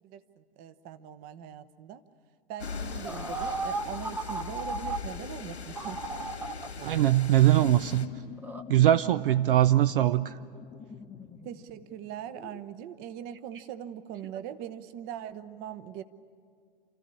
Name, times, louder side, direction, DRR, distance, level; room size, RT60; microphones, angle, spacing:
voice 1, 0.0-2.0 2.5-6.0 11.4-16.0, right 10 dB, 30° right, 13 dB, 0.8 m, -41 dB
sound 1, 2.6-8.1, left 5 dB, 90° left, 2.3 m, -40 dB
sound 2, 3.0-5.0 5.7-6.7 8.4-8.6, right 3 dB, 5° right, 0.6 m, -35 dB
voice 2, 6.8-8.1 8.7-10.4, right 13 dB, 60° right, 15 dB, 0.6 m, -22 dB
sound 3, 7.6-12.6, left 7 dB, 10° left, 0.9 m, -46 dB
28.5 x 14.0 x 9.9 m, 2.2 s
hypercardioid pair, 120°, 32 cm